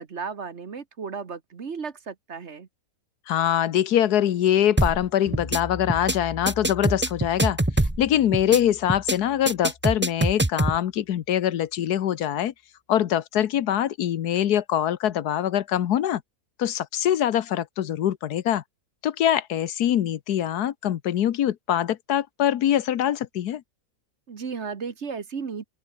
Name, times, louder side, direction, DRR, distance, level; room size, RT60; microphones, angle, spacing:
voice 1, 0.0-2.7 24.3-25.7, right 5 dB, 45° right, 1.5 m, -34 dB
voice 2, 3.3-12.5 12.9-16.2 16.6-18.6 19.0-23.6, left 11 dB, 80° left, 1.4 m, -23 dB
sound 1, 4.8-5.1 5.3-5.6 5.9-6.2 6.5-8.1 8.3-8.6 8.9-9.2 9.5-10.8, right 1 dB, 10° right, 0.8 m, -23 dB
sound 2, 5.3-10.6, left 3 dB, 25° left, 1.5 m, -41 dB
open air
omnidirectional pair, 1.7 m